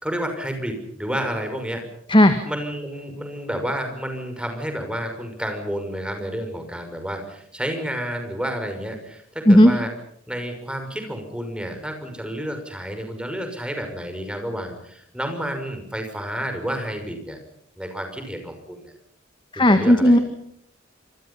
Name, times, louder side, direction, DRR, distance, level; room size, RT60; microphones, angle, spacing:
voice 1, 0.0-1.8 2.5-9.9 10.3-17.4 17.8-18.9 19.6-20.2, equal, 5° right, 5 dB, 6.1 m, -30 dB
voice 2, 19.5-20.2, equal, 25° left, 8 dB, 1.9 m, -13 dB
28.5 x 26.5 x 5.7 m, 0.66 s
head